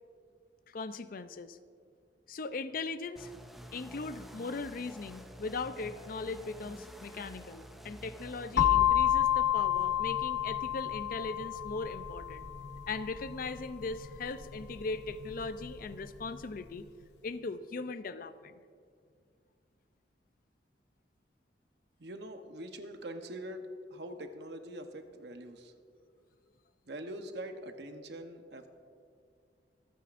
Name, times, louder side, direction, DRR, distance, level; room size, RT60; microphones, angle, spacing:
voice 1, 0.7-1.6 2.3-3.3 3.7-12.5 12.9-18.5, left 3 dB, 55° left, 13 dB, 0.5 m, -39 dB
sound 1, 3.2-8.7, equal, ahead, 0.6 m, -49 dB
sound 2, 8.6-16.4, left 11 dB, 80° left, 0.8 m, -31 dB
voice 2, 22.0-25.7 26.9-28.7, right 1 dB, 70° right, 6 dB, 0.9 m, -43 dB
25.0 x 9.2 x 2.5 m, 2.2 s
head